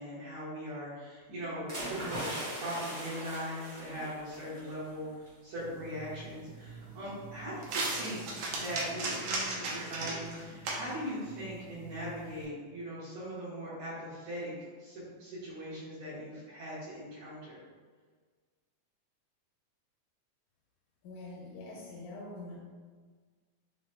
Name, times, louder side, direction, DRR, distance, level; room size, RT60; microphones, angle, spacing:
voice 1, 0.0-14.5 14.8-17.6, equal, 55° right, -12 dB, 1.9 m, -40 dB
sound 1, 1.7-4.7 5.0-5.3, right 1 dB, 40° right, 1.1 m, -40 dB
sound 2, 5.6-12.4, right 3 dB, 75° right, 1.4 m, -38 dB
voice 2, 21.0-22.6, left 2 dB, 90° left, -4 dB, 2.2 m, -44 dB
5.6 x 3.9 x 2.2 m, 1.5 s
omnidirectional pair, 3.4 m